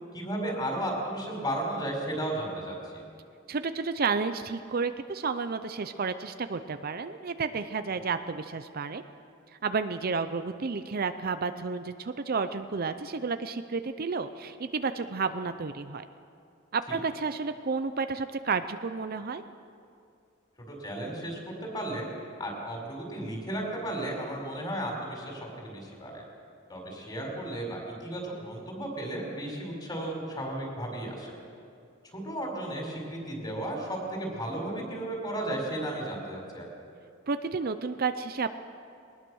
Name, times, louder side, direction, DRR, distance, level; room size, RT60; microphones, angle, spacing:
voice 1, 0.1-3.0 16.9-17.0 20.7-22.1 22.4-26.2 26.7-31.4 32.1-36.7, right 1 dB, 25° left, 0 dB, 4.7 m, -34 dB
voice 2, 3.5-9.0 9.6-16.0 16.7-19.4 37.3-38.6, right 4 dB, 50° right, 10 dB, 0.6 m, -31 dB
21.0 x 19.5 x 6.4 m, 2.4 s
head